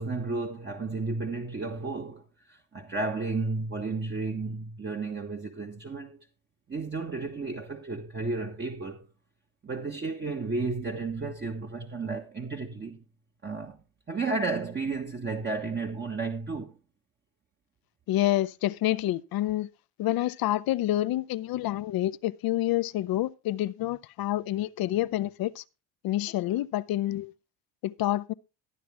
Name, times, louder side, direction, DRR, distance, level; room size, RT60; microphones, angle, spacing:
voice 1, 0.0-6.3 6.7-9.1 9.6-13.0 13.4-13.8 14.1-16.8, right 3 dB, 25° right, 1.4 m, -33 dB
voice 2, 18.1-19.7 20.0-25.6 26.0-27.3 27.8-28.3, left 14 dB, 55° left, 0.7 m, -28 dB
13.5 x 9.2 x 3.5 m
supercardioid pair, 90°, 43 cm